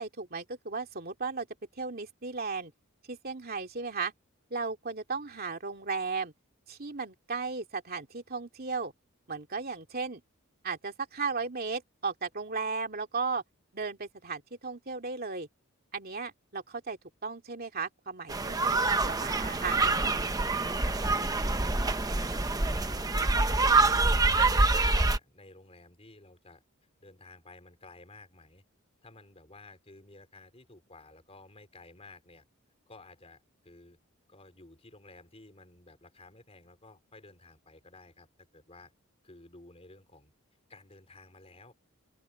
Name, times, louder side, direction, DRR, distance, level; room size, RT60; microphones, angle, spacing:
voice 1, 0.0-1.5 1.8-2.7 3.1-4.1 4.5-6.3 6.7-8.9 9.3-10.2 10.6-13.4 13.7-15.5 15.9-19.8, right 4 dB, 45° right, 2.6 m, -35 dB
sound 1, 18.3-25.2, right 3 dB, 15° right, 0.9 m, -26 dB
voice 2, 20.3-24.0 24.3-26.6 27.0-28.6 29.0-32.4 32.9-34.0 34.3-38.9 39.2-40.3 40.7-41.7, left 2 dB, 30° left, 4.3 m, -54 dB
open air
head